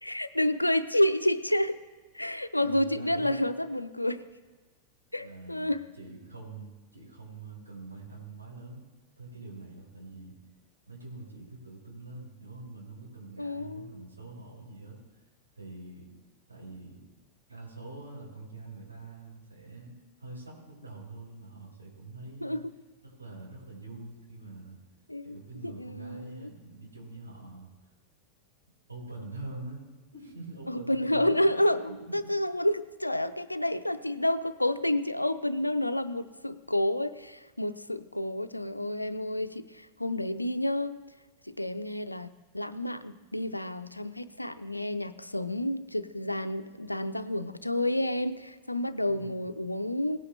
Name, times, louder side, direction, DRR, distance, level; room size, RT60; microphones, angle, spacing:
voice 1, 0.0-1.8 2.1-4.2 5.1-5.8 13.4-14.0 22.4-22.6 25.1-25.4 25.6-26.5 30.7-41.0 41.5-50.2, left 1 dB, 85° left, 12 dB, 0.5 m, -29 dB
voice 2, 2.6-3.5 5.2-5.7 6.0-8.8 9.2-10.3 10.9-15.0 15.5-16.1 16.5-17.0 17.5-22.6 23.0-24.8 25.2-27.7 28.9-29.8 30.1-31.5 31.8-32.1 49.0-49.5, right 2 dB, 80° right, -3 dB, 4.4 m, -45 dB
17.5 x 8.5 x 3.3 m, 1.2 s
figure-of-eight pair, 90°, 0 cm